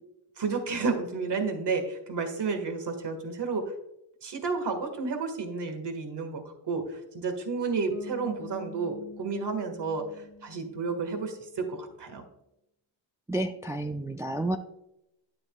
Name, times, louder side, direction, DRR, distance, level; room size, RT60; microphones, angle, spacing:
voice 1, 0.4-3.6 4.2-6.4 6.7-10.1 10.4-12.2, right 4 dB, 55° right, 6 dB, 1.9 m, -31 dB
Bass guitar, 7.9-11.6, equal, 60° left, 1.2 m, -47 dB
voice 2, 13.3-14.6, right 1 dB, 5° right, 6 dB, 0.4 m, -30 dB
10.0 x 7.5 x 2.4 m, 0.85 s
cardioid pair, 70°, 49 cm